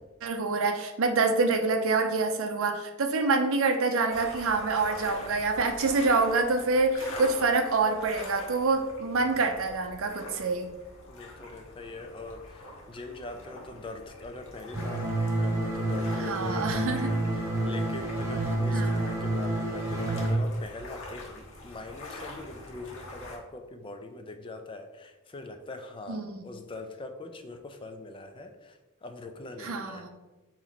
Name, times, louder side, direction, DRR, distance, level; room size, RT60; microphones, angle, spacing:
voice 1, 0.2-10.7 16.2-17.1 18.7-19.0 26.1-26.5 29.6-30.1, right 3 dB, 65° right, 6 dB, 0.5 m, -26 dB
sound 1, 4.1-23.4, left 1 dB, 65° left, 1.0 m, -45 dB
voice 2, 11.1-15.1 15.4-30.1, left 3 dB, 25° left, 6 dB, 0.4 m, -42 dB
sound 2, 14.7-20.3, right 1 dB, 15° right, 0.9 m, -29 dB
4.2 x 3.0 x 4.0 m, 1.1 s
head